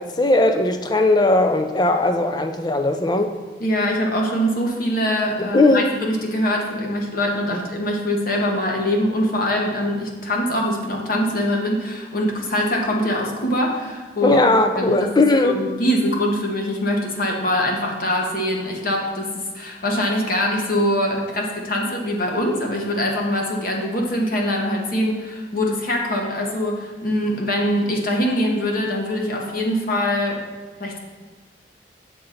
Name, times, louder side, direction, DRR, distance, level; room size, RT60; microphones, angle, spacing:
voice 1, 0.0-3.3 5.4-5.9 7.5-7.6 14.2-15.6, left 2 dB, 25° left, 6 dB, 0.5 m, -18 dB
voice 2, 3.6-14.4 14.8-15.1 15.4-30.4 30.8-31.0, equal, 55° left, 0 dB, 1.1 m, -23 dB
6.7 x 3.9 x 5.7 m, 1.3 s
head